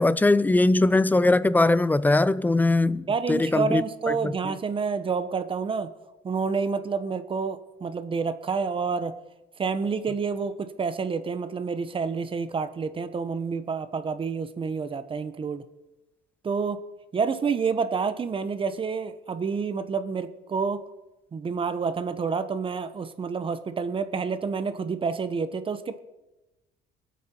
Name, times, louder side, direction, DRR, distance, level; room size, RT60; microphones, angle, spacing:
voice 1, 0.0-4.5, left 2 dB, 10° left, 0.4 m, -21 dB
voice 2, 3.1-5.9 6.2-9.1 9.6-15.6 16.4-16.8 17.1-20.8 21.3-26.0, right 5 dB, 30° right, 1.0 m, -28 dB
22.5 x 8.5 x 4.5 m
cardioid pair, 110°, 17 cm